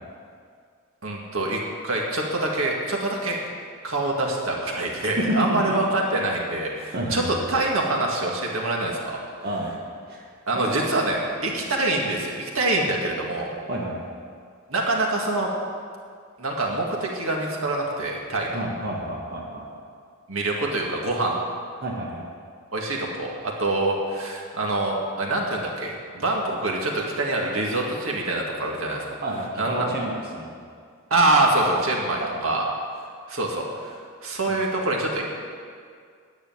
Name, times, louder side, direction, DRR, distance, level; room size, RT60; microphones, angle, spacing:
voice 1, 1.0-3.4 3.8-9.2 10.5-13.5 14.7-15.5 16.4-18.6 20.3-21.4 22.7-29.1 29.6-29.9 31.1-32.6 33.3-33.9 34.2-35.2, right 2 dB, 75° right, -1 dB, 2.0 m, -25 dB
voice 2, 6.9-7.3 9.4-9.7 10.1-10.8 11.4-11.6 13.7-14.1 18.5-19.6 21.8-22.2 29.2-30.5 32.2-32.6, right 1 dB, 50° right, -3 dB, 1.6 m, -30 dB
10.0 x 8.1 x 9.3 m, 2.1 s
head